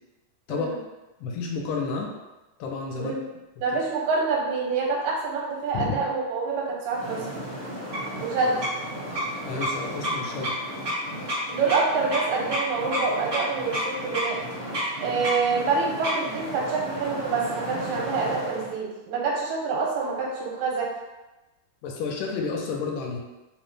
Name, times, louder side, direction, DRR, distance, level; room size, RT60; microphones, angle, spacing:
voice 1, 1.2-2.1 2.6-3.1 5.7-6.0 9.4-10.5 21.8-23.2, left 4 dB, 80° left, 0 dB, 2.1 m, -30 dB
voice 2, 3.6-7.3 8.2-8.6 11.5-14.4 15.0-20.9, right 4 dB, 85° right, -2 dB, 2.4 m, -26 dB
sound 1, 6.9-18.7, equal, 60° right, 0.7 m, -31 dB
5.1 x 2.1 x 3.1 m, 1.1 s
omnidirectional pair, 3.8 m